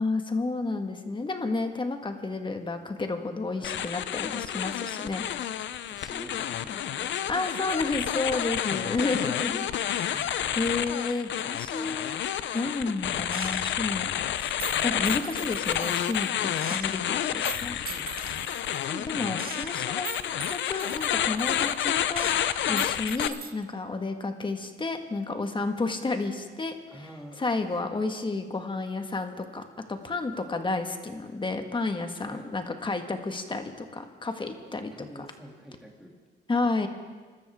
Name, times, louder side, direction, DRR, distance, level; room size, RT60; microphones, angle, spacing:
voice 1, 0.0-5.3 7.3-9.7 10.0-12.2 12.5-14.1 14.4-14.5 14.8-17.8 18.2-18.6 18.9-20.1 20.5-22.3 22.7-27.1 27.4-34.9 36.5-36.9, left 3 dB, 25° left, 6 dB, 1.6 m, -31 dB
voice 2, 3.5-3.8 5.9-8.1 9.8-10.2 17.7-18.5 26.9-27.4 27.9-28.1 32.2-32.5 34.9-36.1, equal, ahead, -1 dB, 2.8 m, -48 dB
sound 1, 3.6-23.3, left 10 dB, 65° left, 0.7 m, -30 dB
Gunshot gunfire, 13.3-13.9 14.6-16.3 16.6-18.8 19.4-21.9 22.2-23.5, right 7 dB, 50° right, 1.4 m, -41 dB
27.5 x 13.0 x 3.6 m, 1.4 s
cardioid pair, 90°, 20 cm